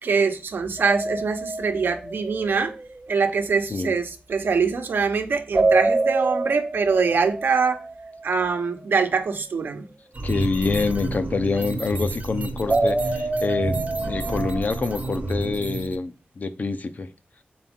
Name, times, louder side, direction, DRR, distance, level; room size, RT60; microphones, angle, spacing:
voice 1, 0.0-2.7 3.1-7.8 8.2-9.9, right 5 dB, 80° right, 0.9 m, -23 dB
sound 1, 0.8-2.9 5.5-8.4 12.7-14.9, right 2 dB, 25° right, 0.4 m, -26 dB
sound 2, 10.1-16.0, right 2 dB, 45° right, 0.9 m, -30 dB
voice 2, 10.2-13.8 14.0-17.1, left 4 dB, 50° left, 0.6 m, -26 dB
6.9 x 4.4 x 3.7 m
wide cardioid pair, 100°, 4 cm